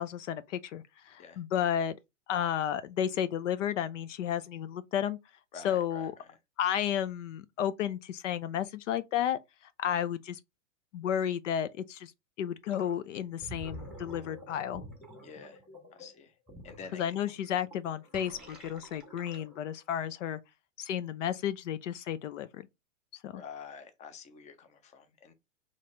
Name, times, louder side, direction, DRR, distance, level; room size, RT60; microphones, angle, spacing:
voice 1, 0.0-2.0 2.3-5.2 5.6-6.1 6.6-9.4 9.8-10.4 10.9-12.1 12.4-14.8 16.9-20.4 20.8-22.6 23.2-23.4, left 9 dB, 65° left, 0.6 m, -32 dB
voice 2, 5.5-6.4 15.2-15.6 15.9-16.3 16.6-17.0 23.3-25.3, left 6 dB, 20° left, 0.7 m, -48 dB
Gurgling, 12.7-12.9 13.3-19.7, equal, ahead, 1.6 m, -49 dB
sound 1, 18.1-19.1, right 6 dB, 20° right, 0.9 m, -51 dB
4.1 x 3.2 x 3.7 m
hypercardioid pair, 115°, 39 cm